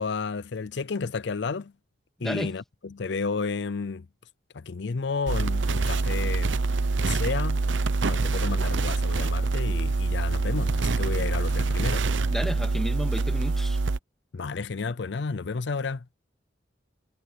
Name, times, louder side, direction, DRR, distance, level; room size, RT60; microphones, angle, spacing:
voice 1, 0.0-1.7 2.2-4.1 4.5-6.6 7.0-12.0 14.3-16.1, left 4 dB, 70° left, 0.5 m, -32 dB
voice 2, 2.2-2.5 12.3-13.8, equal, ahead, 2.4 m, -32 dB
sound 1, 5.3-14.0, right 3 dB, 80° right, 0.7 m, -25 dB
head